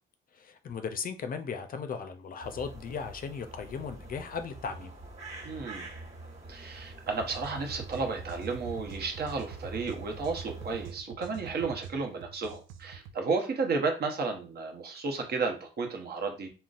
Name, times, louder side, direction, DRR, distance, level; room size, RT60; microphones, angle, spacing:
voice 1, 0.3-4.9, left 6 dB, 45° left, 0.5 m, -37 dB
sound 1, 2.4-10.9, right 2 dB, 30° right, 1.5 m, -46 dB
voice 2, 5.4-5.9 6.5-16.5, right 4 dB, 55° right, 0.9 m, -33 dB
sound 2, 7.1-13.2, right 7 dB, 85° right, 0.4 m, -46 dB
3.8 x 2.1 x 2.4 m
cardioid pair, 90°, 20 cm